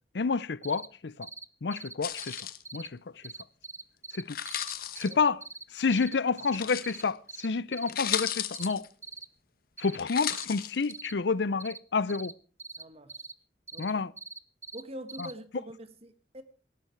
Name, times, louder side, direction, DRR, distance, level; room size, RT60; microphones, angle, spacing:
voice 1, 0.1-1.3 1.6-2.5 2.7-3.0 4.1-4.4 5.0-5.4 5.7-8.9 9.8-12.3 13.8-14.1 15.2-15.3, left 4 dB, 70° left, 0.6 m, -29 dB
sound 1, 0.6-0.9 1.2-1.4 1.7-2.9 3.2-5.1 5.4-5.6 5.9-6.6 6.8-7.0 7.3-7.5 7.7-8.7 9.0-9.3 9.8-10.0 10.3-10.5 10.9-11.1 11.6-11.8 12.1-12.3 12.6-12.8 13.1-13.3 13.7-14.8 15.1-15.3, right 4 dB, 15° right, 0.7 m, -43 dB
sound 2, 2.0-2.6 4.2-5.1 6.5-7.1 7.6-7.7 7.9-8.9 10.0-10.9, left 10 dB, 55° left, 1.1 m, -34 dB
voice 2, 12.8-13.2 13.7-13.9 14.7-16.4, equal, 35° right, 1.4 m, -44 dB
17.0 x 12.5 x 4.6 m
head